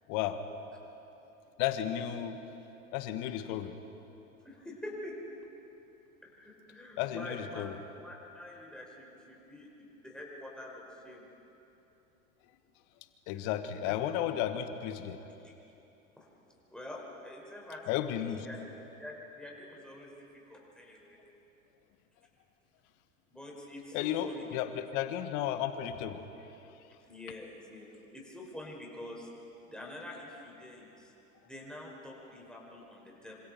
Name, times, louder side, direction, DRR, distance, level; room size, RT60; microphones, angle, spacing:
voice 1, 0.1-0.4 1.6-2.4 2.9-3.7 7.0-7.7 13.3-15.2 17.9-18.5 23.9-26.3, left 11 dB, 45° left, 9 dB, 1.7 m, -33 dB
voice 2, 4.4-5.4 5.9-7.7 8.0-11.2 13.3-13.5 15.4-15.5 16.7-18.1 18.4-18.6 19.0-20.1 20.5-21.2 23.3-24.5 27.1-29.3 29.6-31.1 31.4-33.4, left 1 dB, ahead, -3 dB, 5.7 m, -46 dB
27.0 x 26.0 x 4.6 m, 3.0 s
figure-of-eight pair, 90°, 42 cm